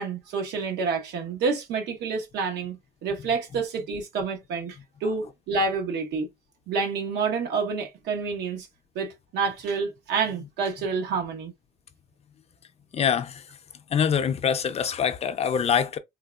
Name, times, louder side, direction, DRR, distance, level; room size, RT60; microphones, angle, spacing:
voice 1, 0.0-6.3 6.7-8.7 8.9-11.5, right 4 dB, 80° right, 1.2 m, -28 dB
voice 2, 12.9-13.5 13.9-16.0, left 7 dB, 40° left, 0.5 m, -24 dB
3.8 x 2.4 x 2.3 m
cardioid pair, 110°, 17 cm